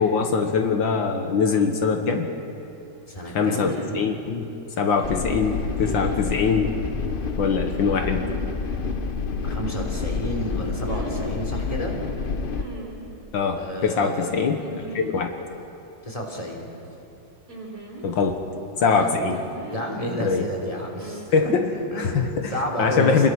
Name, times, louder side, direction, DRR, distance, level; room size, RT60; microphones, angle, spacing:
voice 1, 0.0-2.3 3.3-4.5 4.8-6.7 7.2-8.2 13.3-15.3 18.0-18.4 18.8-19.4 20.2-20.5 21.3-21.7 22.0-23.3, left 5 dB, 75° left, 4 dB, 2.0 m, -23 dB
sound 1, 1.6-1.7 3.5-4.1 5.8-6.3 7.7-8.3 10.8-11.4 12.5-13.1 14.6-15.2 15.5-15.6 17.5-18.4 19.3-19.9 21.0-21.3, right 2 dB, 45° right, 4.3 m, -38 dB
voice 2, 3.1-3.7 9.4-11.9 13.5-14.3 16.0-16.7 18.8-19.1 19.7-21.6 21.9-23.2, equal, 15° left, 0 dB, 3.6 m, -31 dB
sound 2, 5.0-12.6, left 4 dB, 40° left, 0.8 m, -28 dB
28.5 x 21.5 x 6.2 m, 2.7 s
omnidirectional pair, 2.1 m